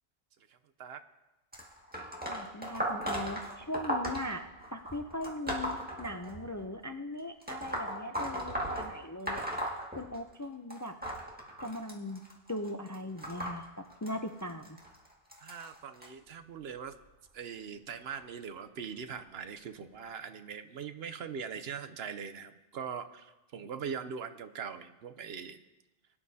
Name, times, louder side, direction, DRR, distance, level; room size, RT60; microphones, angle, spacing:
voice 1, 0.5-1.0 15.4-16.9 17.3-25.6, right 7 dB, 75° right, 10 dB, 0.9 m, -41 dB
sound 1, 1.5-6.7 7.4-10.4 10.7-16.1 16.9-17.1 18.2-18.3 19.1-19.2 19.9-20.0, right 1 dB, 10° right, 1.8 m, -37 dB
voice 2, 2.3-4.4 4.7-11.0 11.6-14.8, left 1 dB, 25° left, 5 dB, 0.4 m, -39 dB
22.0 x 9.8 x 2.8 m, 1.0 s
omnidirectional pair, 1.1 m